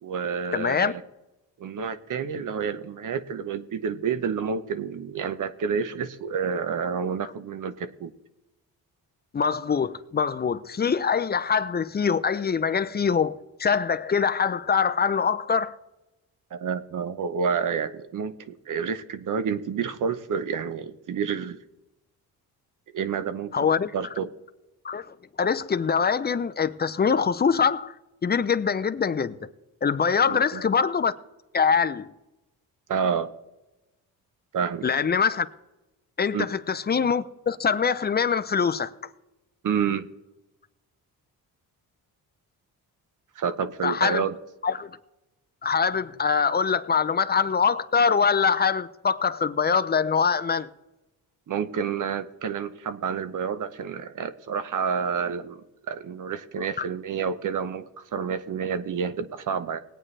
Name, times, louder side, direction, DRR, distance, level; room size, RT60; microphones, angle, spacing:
voice 1, 0.0-1.0 1.6-8.1 16.5-21.6 22.9-23.7 23.9-24.3 30.3-30.6 32.9-33.3 34.5-34.9 36.3-36.5 39.6-40.1 43.3-44.4 51.5-55.6 55.9-59.8, right 6 dB, 55° right, 0.9 m, -29 dB
voice 2, 0.5-0.9 9.3-15.7 23.5-23.9 24.8-27.9 28.2-29.4 29.8-31.1 31.5-32.1 34.8-35.5 36.2-38.9 43.8-44.2 44.6-44.9 45.6-50.7, left 6 dB, 25° left, 0.5 m, -24 dB
20.0 x 8.9 x 3.3 m
cardioid pair, 115°, 37 cm